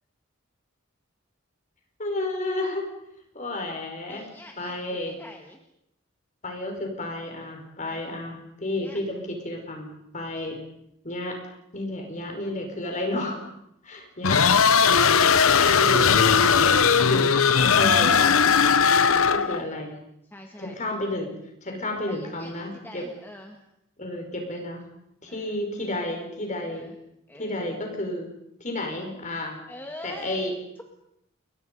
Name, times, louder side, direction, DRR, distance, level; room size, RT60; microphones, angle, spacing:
voice 1, 2.0-2.9 3.3-4.2 4.6-5.2 6.4-10.6 11.0-11.4 11.7-13.5 13.8-14.4 14.8-15.3 15.6-17.3 17.8-18.4 18.9-20.0 20.6-21.3 21.6-23.0 24.0-24.9 25.2-26.9 27.4-28.3 28.6-29.6 30.0-30.5, left 1 dB, 35° left, 3 dB, 5.4 m, -32 dB
voice 2, 4.1-5.6 7.8-8.0 8.8-9.0 18.9-19.6 20.2-20.8 22.1-23.6 25.3-25.6 26.6-27.0 27.3-27.6 29.7-30.5, left 1 dB, 10° left, 2 dB, 1.8 m, -44 dB
sound 1, 14.2-19.6, left 6 dB, 85° left, 0.9 m, -18 dB
29.0 x 23.0 x 5.5 m, 0.78 s
head